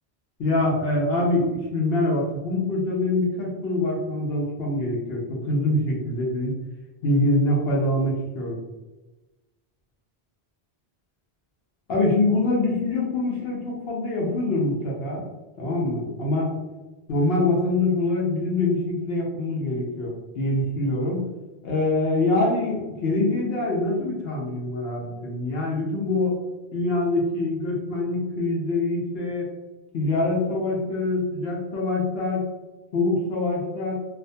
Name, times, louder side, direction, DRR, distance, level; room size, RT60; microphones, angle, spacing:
voice 1, 0.4-6.5 7.0-8.6 11.9-15.2 15.6-16.5 17.1-21.2 21.6-26.4 26.7-29.4 29.9-32.5 32.9-33.9, left 2 dB, 75° left, -3 dB, 0.9 m, -24 dB
2.5 x 2.2 x 2.6 m, 1.1 s
omnidirectional pair, 1.0 m